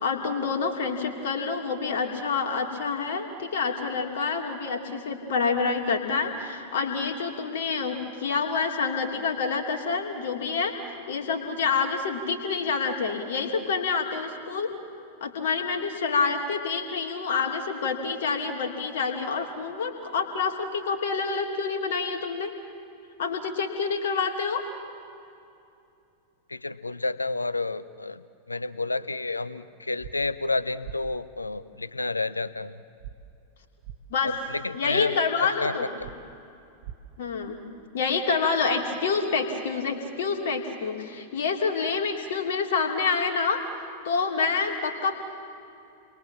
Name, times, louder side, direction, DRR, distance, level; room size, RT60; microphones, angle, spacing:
voice 1, 0.0-14.7 15.2-22.5 23.2-24.7 34.1-34.3 34.7-35.9 37.2-37.6 37.9-43.6 44.0-45.1, left 5 dB, 60° left, 3 dB, 2.8 m, -27 dB
voice 2, 26.5-32.8 34.2-35.2 35.4-36.1, left 3 dB, 80° left, 16 dB, 0.7 m, -30 dB
sound 1, 30.0-30.1 30.8-31.0 33.0-33.1 33.8-34.0 36.0-36.2 36.8-37.0, right 12 dB, 55° right, 0.9 m, -39 dB
30.0 x 22.5 x 7.3 m, 2.6 s
figure-of-eight pair, 90°, 0 cm